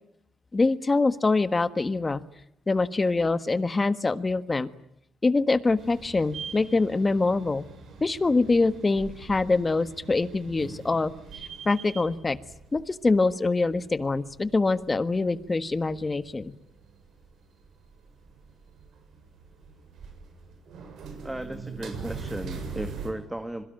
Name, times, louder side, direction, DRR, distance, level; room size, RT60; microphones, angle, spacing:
voice 1, 0.5-2.2 2.7-4.7 5.2-7.6 8.0-11.1 11.6-12.4 12.7-16.5, left 3 dB, 25° left, 12 dB, 1.5 m, -24 dB
sound 1, 5.8-23.1, right 5 dB, 70° right, 7.5 m, -43 dB
voice 2, 21.2-23.6, right 1 dB, 10° right, 8 dB, 2.0 m, -35 dB
26.0 x 22.5 x 9.3 m, 0.76 s
cardioid pair, 90°, 0 cm